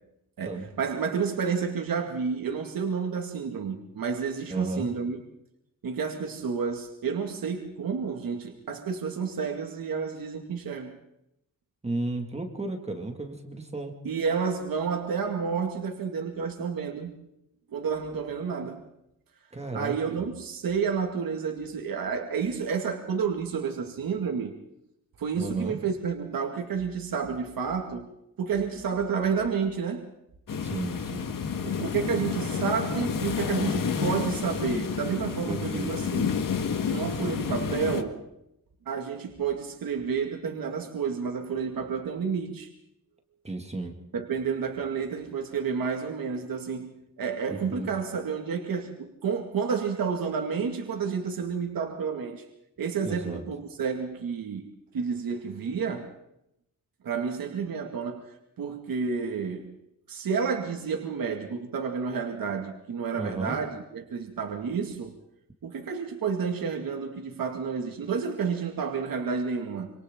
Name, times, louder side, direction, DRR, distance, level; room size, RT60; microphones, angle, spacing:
voice 1, 0.4-5.2 5.8-11.0 14.0-17.1 17.7-18.8 19.7-24.5 25.2-28.1 28.4-30.1 31.6-36.3 36.9-38.2 38.9-42.7 44.1-52.4 52.8-56.1 57.0-59.7 60.1-65.1 65.6-69.9, right 6 dB, 80° right, 3 dB, 2.3 m, -30 dB
voice 2, 4.5-4.9 11.8-14.0 19.5-20.0 25.4-25.8 30.6-31.3 35.5-35.9 43.4-43.9 47.5-47.9 53.0-53.4 63.1-63.6, right 2 dB, 20° right, 3 dB, 2.2 m, -33 dB
sound 1, 30.5-38.0, left 6 dB, 70° left, 1.7 m, -30 dB
26.5 x 26.5 x 3.8 m, 0.82 s
wide cardioid pair, 165°, 34 cm